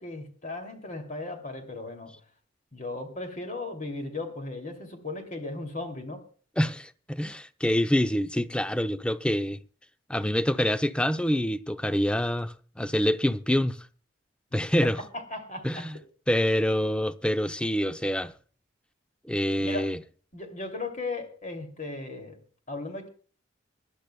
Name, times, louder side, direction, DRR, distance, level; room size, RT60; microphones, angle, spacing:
voice 1, 0.0-2.2 2.7-6.2 14.8-15.9 19.6-19.9 20.3-22.4 22.7-23.1, left 2 dB, 40° left, 2.7 m, -36 dB
voice 2, 6.6-9.6 10.1-13.8 14.5-15.0 15.6-16.0 16.3-18.3 19.3-20.0, equal, 5° left, 0.6 m, -26 dB
25.0 x 12.0 x 2.3 m
head